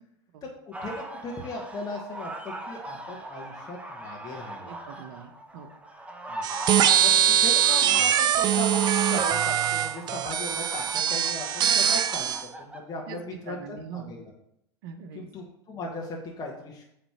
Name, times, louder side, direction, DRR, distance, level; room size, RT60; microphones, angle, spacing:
voice 1, 0.4-4.7 6.2-6.4 7.0-14.3 15.1-16.8, left 2 dB, 25° left, -1 dB, 1.3 m, -38 dB
sound 1, 0.7-12.8, right 2 dB, 10° right, 0.9 m, -39 dB
voice 2, 4.7-5.7 13.1-14.1 14.8-15.3, right 7 dB, 60° right, 8 dB, 0.9 m, -42 dB
sound 2, 6.4-12.4, right 10 dB, 30° right, 0.4 m, -23 dB
7.9 x 3.3 x 4.6 m, 0.78 s
hypercardioid pair, 90°, 14 cm